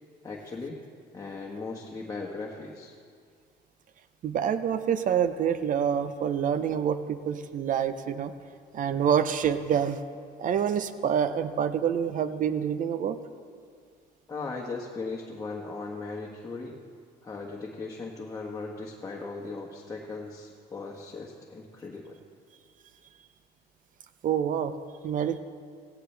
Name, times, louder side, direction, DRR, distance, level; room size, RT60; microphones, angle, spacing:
voice 1, 0.2-0.8 1.1-2.9 14.3-16.8 17.2-22.2, left 3 dB, 20° left, -2 dB, 1.4 m, -38 dB
voice 2, 4.2-8.3 8.7-10.0 10.4-13.2 24.2-24.8 25.0-25.4, right 8 dB, 50° right, 11 dB, 0.8 m, -27 dB
17.0 x 16.0 x 3.4 m, 2.1 s
cardioid pair, 110°, 17 cm